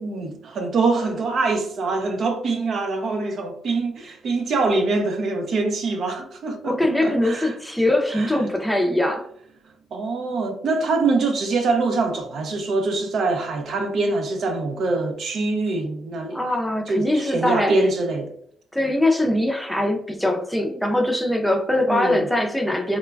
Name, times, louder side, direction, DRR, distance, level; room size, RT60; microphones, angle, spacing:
voice 1, 0.0-7.5 8.1-8.4 9.9-16.6 16.9-18.3 21.9-22.2, right 3 dB, 60° right, 0.5 m, -24 dB
voice 2, 6.6-9.3 16.3-17.9 18.7-23.0, left 1 dB, 5° left, 0.5 m, -22 dB
3.0 x 2.2 x 2.3 m
cardioid pair, 90°, 0 cm